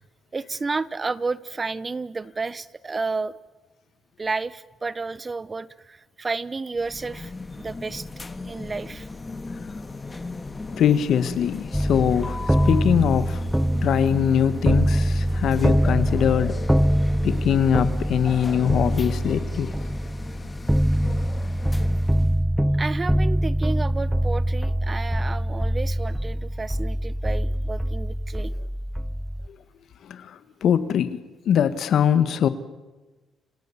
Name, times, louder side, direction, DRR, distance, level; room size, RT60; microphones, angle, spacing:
voice 1, 0.3-3.3 4.2-7.3 7.6-8.1 8.5-9.1 22.8-28.5, right 4 dB, 30° right, 18 dB, 0.9 m, -31 dB
sound 1, 6.8-22.4, left 3 dB, 25° left, 1.9 m, -36 dB
voice 2, 10.7-12.4 12.6-13.4 13.8-16.6 17.2-19.7 30.0-31.2 31.4-32.5, left 9 dB, 70° left, 13 dB, 1.6 m, -22 dB
sound 2, 11.7-29.5, equal, 5° right, 1.0 m, -24 dB
30.0 x 27.0 x 7.3 m, 1.2 s
cardioid pair, 90°, 0 cm